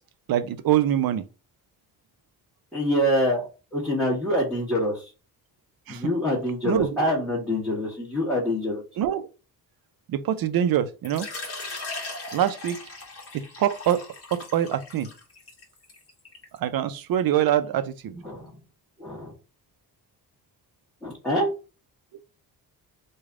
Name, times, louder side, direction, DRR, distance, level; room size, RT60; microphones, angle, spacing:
voice 1, 0.3-1.2 5.9-6.0 6.6-6.9 9.0-9.3 10.1-11.3 12.3-12.8 13.3-14.0 14.3-15.1 16.6-18.1, right 11 dB, 65° right, 0.6 m, -24 dB
voice 2, 2.7-5.1 5.9-8.8 18.1-18.5 19.0-19.3 21.0-21.5, equal, ahead, 1.3 m, -26 dB
Water / Liquid, 11.0-16.6, left 3 dB, 35° left, 1.3 m, -38 dB
3.3 x 2.3 x 3.6 m
cardioid pair, 115°, 38 cm